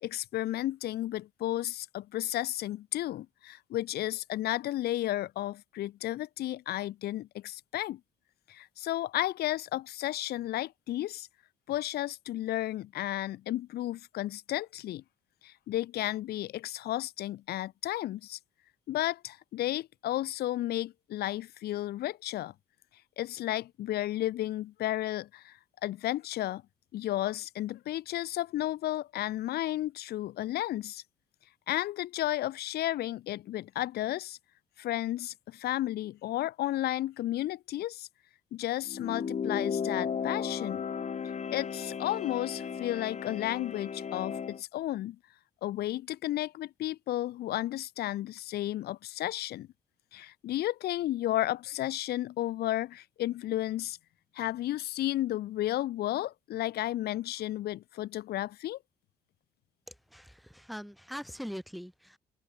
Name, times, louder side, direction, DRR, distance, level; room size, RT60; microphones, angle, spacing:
voice 1, 0.0-8.0 8.5-11.3 11.7-15.0 15.4-18.4 18.9-22.5 23.2-26.6 26.9-31.0 31.7-34.4 34.8-38.1 38.5-40.8 41.5-45.2 45.6-49.7 50.1-54.0 54.3-58.8, left 14 dB, 60° left, 0.8 m, -33 dB
sound 1, 38.9-44.6, left 6 dB, 40° left, 1.3 m, -35 dB
voice 2, 59.9-62.2, equal, ahead, 3.7 m, -42 dB
open air
hypercardioid pair, 45°, 18 cm